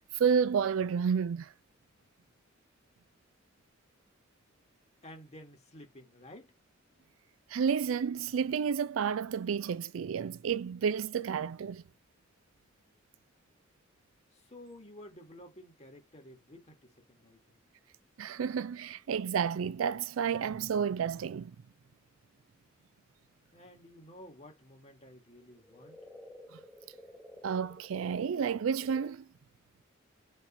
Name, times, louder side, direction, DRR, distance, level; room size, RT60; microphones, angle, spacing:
voice 1, 0.0-1.5 7.5-11.8 18.2-21.6 27.4-29.2, right 7 dB, 90° right, 0.4 m, -31 dB
voice 2, 5.0-6.6 14.3-17.6 23.5-26.0, left 1 dB, 35° left, 2.5 m, -52 dB
sound 1, 25.3-29.1, left 1 dB, 5° right, 0.8 m, -53 dB
5.5 x 3.8 x 5.6 m
head